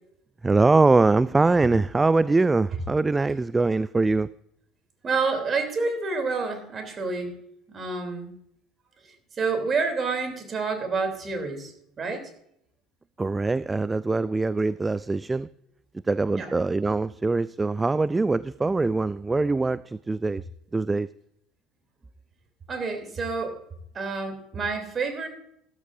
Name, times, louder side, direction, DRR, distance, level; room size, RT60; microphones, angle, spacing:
voice 1, 0.4-4.3 13.2-15.5 16.1-20.4 20.7-21.1, right 3 dB, 15° right, 18 dB, 0.3 m, -23 dB
voice 2, 5.0-7.3 7.7-8.3 9.4-11.7 12.0-12.3 16.4-16.5 22.7-23.6 23.9-25.3, right 4 dB, 35° right, 5 dB, 3.1 m, -28 dB
15.0 x 13.5 x 2.6 m, 0.72 s
figure-of-eight pair, 65°, 0 cm